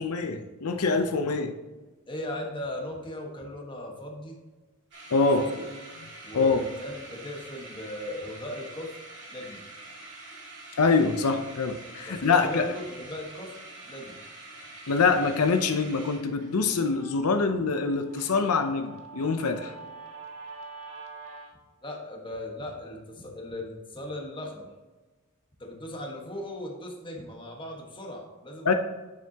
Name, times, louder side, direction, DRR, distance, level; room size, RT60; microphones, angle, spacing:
voice 1, 0.0-1.5 5.1-5.4 6.3-6.6 10.8-12.7 14.9-19.7 28.6-28.7, left 4 dB, 90° left, 7 dB, 0.7 m, -24 dB
voice 2, 2.1-4.4 5.4-5.7 6.2-8.9 9.3-9.6 12.1-13.5 13.9-14.2 21.8-24.7 25.6-28.7, left 1 dB, 20° left, 0 dB, 1.4 m, -38 dB
sound 1, 4.9-18.8, right 2 dB, 55° right, 2.3 m, -46 dB
Guitar, 16.0-21.5, right 4 dB, 70° right, 1.5 m, -46 dB
9.3 x 6.9 x 2.9 m, 1.3 s
head